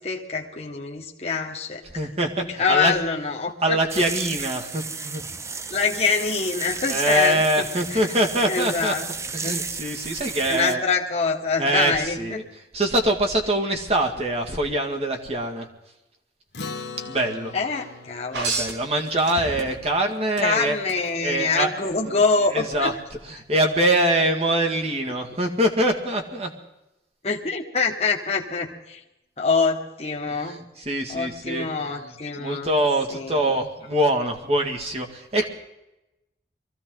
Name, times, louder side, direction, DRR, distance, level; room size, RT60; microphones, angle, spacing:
voice 1, 0.0-1.8 2.4-4.0 5.7-8.0 8.5-9.1 9.4-9.6 10.5-12.4 17.5-18.5 20.4-23.0 27.2-29.0 29.4-30.6 31.1-32.7 33.1-33.6, left 4 dB, 35° left, -1 dB, 1.5 m, -25 dB
voice 2, 1.9-3.0 3.6-5.2 6.9-8.9 9.3-10.8 11.6-12.4 12.7-15.7 17.1-17.5 18.3-20.8 21.2-21.7 22.1-22.2 22.5-22.9 23.2-26.5 30.3-32.1 32.4-35.5, right 1 dB, 35° right, 2 dB, 2.0 m, -24 dB
sound 1, 3.9-10.7, right 4 dB, 15° right, 0.5 m, -33 dB
Acoustic guitar, 16.5-21.2, left 3 dB, 65° left, 1.2 m, -41 dB
sound 2, 18.3-19.9 20.4-21.0 22.6-22.7, right 3 dB, 80° right, 2.0 m, -30 dB
23.5 x 15.0 x 3.9 m, 0.92 s
head